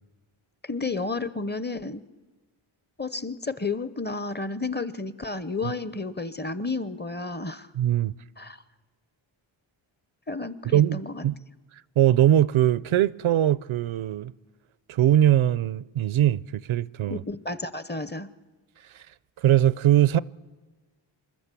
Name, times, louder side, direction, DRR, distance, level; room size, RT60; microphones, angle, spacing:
voice 1, 0.6-2.0 3.0-7.7 8.4-8.6 10.3-11.2 17.1-18.3, left 3 dB, 20° left, 0.6 m, -32 dB
voice 2, 7.7-8.1 10.7-11.3 12.0-14.3 14.9-17.2 18.9-19.0 19.4-20.2, right 12 dB, 75° right, 0.6 m, -21 dB
26.5 x 12.0 x 8.3 m
wide cardioid pair, 110°, 50 cm